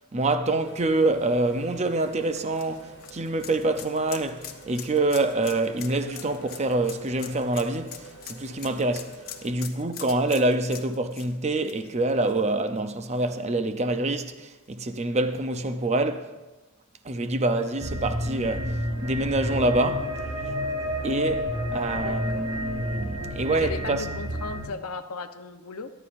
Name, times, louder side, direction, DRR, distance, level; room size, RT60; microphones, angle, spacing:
voice 1, 0.1-9.1 9.4-16.3 17.0-20.1 21.0-24.0, right 2 dB, 30° right, 0.7 m, -26 dB
sound 1, 0.6-9.5, right 1 dB, 55° right, 4.6 m, -48 dB
sound 2, 2.0-12.8 13.1-13.2 14.7-14.8, left 9 dB, 45° left, 1.1 m, -43 dB
sound 3, 17.8-24.7, equal, 75° right, 2.6 m, -30 dB
voice 2, 21.9-22.5 23.5-25.9, left 4 dB, 85° left, 0.8 m, -36 dB
22.5 x 11.0 x 2.6 m
head